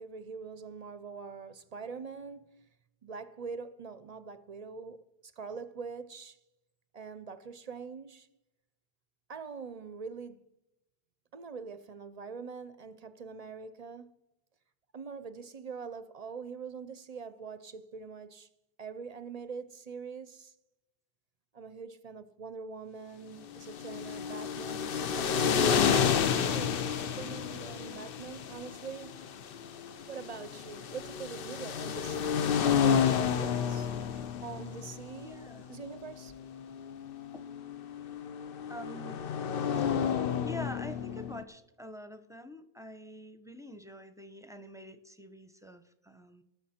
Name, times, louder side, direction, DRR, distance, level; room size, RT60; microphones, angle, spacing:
voice 1, 0.0-2.7 3.0-6.4 6.9-8.3 9.3-10.4 11.3-14.2 14.9-18.5 18.8-20.5 21.5-25.9 26.3-29.2 30.1-33.9 34.4-36.3, right 5 dB, 45° right, 0.6 m, -44 dB
sound 1, 23.5-41.4, left 7 dB, 65° left, 0.8 m, -31 dB
voice 2, 34.7-35.7 37.3-37.5 38.7-39.2 39.8-39.9 40.5-46.4, left 1 dB, 5° right, 0.7 m, -46 dB
19.0 x 6.5 x 4.3 m
omnidirectional pair, 1.0 m